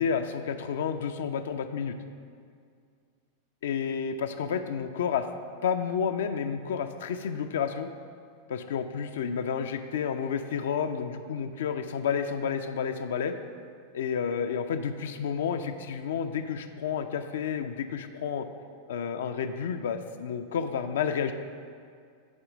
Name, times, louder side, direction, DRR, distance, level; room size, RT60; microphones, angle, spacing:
voice 1, 0.0-1.9 3.6-5.3 5.6-7.9 8.5-13.3 13.9-18.5 18.9-21.3, left 7 dB, 60° left, 7 dB, 0.4 m, -30 dB
8.7 x 4.4 x 6.4 m, 2.2 s
figure-of-eight pair, 90°, 0 cm